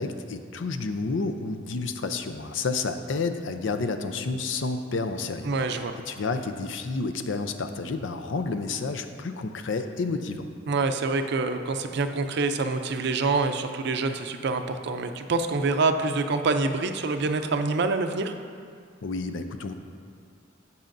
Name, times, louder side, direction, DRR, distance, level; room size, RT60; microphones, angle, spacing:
voice 1, 0.0-10.5 19.0-19.7, left 3 dB, 70° left, 8 dB, 0.5 m, -30 dB
voice 2, 5.4-5.9 10.7-18.3, right 3 dB, 60° right, 7 dB, 0.5 m, -26 dB
16.0 x 5.5 x 2.6 m, 2.2 s
head